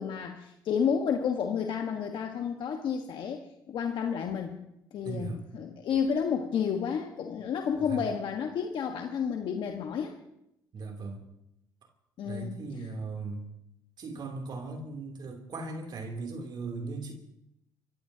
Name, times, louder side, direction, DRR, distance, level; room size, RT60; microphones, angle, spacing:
voice 1, 0.0-4.6 4.9-10.1 12.2-12.9, left 7 dB, 60° left, 3 dB, 1.4 m, -31 dB
voice 2, 5.0-5.4 7.8-8.0 10.7-11.2 12.2-13.5 14.0-17.1, right 3 dB, 50° right, 2 dB, 3.1 m, -38 dB
29.0 x 15.5 x 2.9 m, 0.82 s
supercardioid pair, 65°, 9 cm